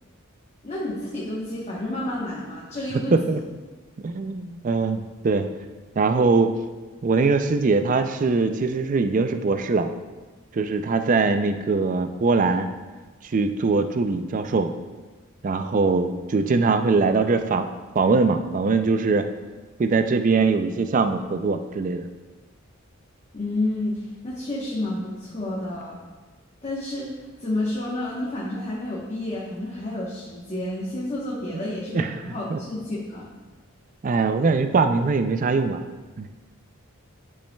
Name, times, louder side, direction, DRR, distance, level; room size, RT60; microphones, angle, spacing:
voice 1, 0.6-3.4 23.3-26.0 26.6-27.1 27.4-33.3, left 1 dB, 30° left, -6 dB, 1.0 m, -30 dB
voice 2, 4.0-5.5 6.0-6.5 7.0-9.9 10.5-12.7 13.2-14.7 15.4-17.7 18.0-19.3 19.8-22.1 31.5-31.6 31.9-32.1 32.5-32.6 34.0-35.8 36.2-36.3, right 4 dB, 35° right, 8 dB, 0.3 m, -22 dB
10.0 x 5.4 x 2.3 m, 1.2 s
head